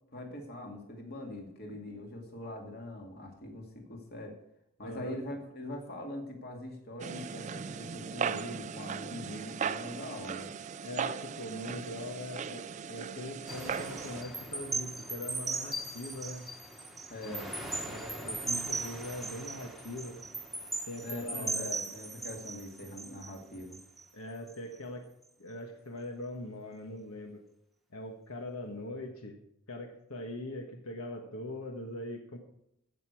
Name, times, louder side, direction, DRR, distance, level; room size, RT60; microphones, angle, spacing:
voice 1, 0.1-4.4 4.8-10.5 17.1-17.5 21.0-23.8, left 1 dB, 45° left, 2 dB, 2.2 m, -42 dB
voice 2, 4.8-5.2 10.8-16.4 17.2-20.2 20.9-21.9 24.1-25.1 25.4-27.4 27.9-29.4 29.7-32.4, left 1 dB, 80° left, 3 dB, 1.4 m, -41 dB
sound 1, 7.0-14.2, right 6 dB, 35° right, 0.3 m, -38 dB
sound 2, 13.5-24.0 24.5-24.7, right 3 dB, ahead, 1.2 m, -38 dB
15.5 x 6.8 x 4.6 m, 0.77 s
head